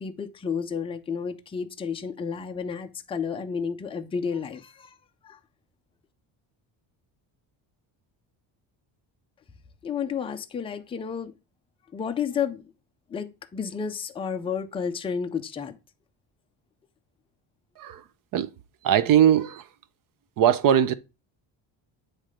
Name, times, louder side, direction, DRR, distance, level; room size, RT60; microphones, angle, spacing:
voice 1, 0.0-5.0 5.2-5.4 9.8-11.3 11.9-12.6 13.1-15.8, left 6 dB, 15° left, 0.3 m, -31 dB
voice 2, 18.8-19.6 20.4-20.9, right 10 dB, 45° right, 0.5 m, -19 dB
9.2 x 3.2 x 4.9 m
cardioid pair, 175°, 46 cm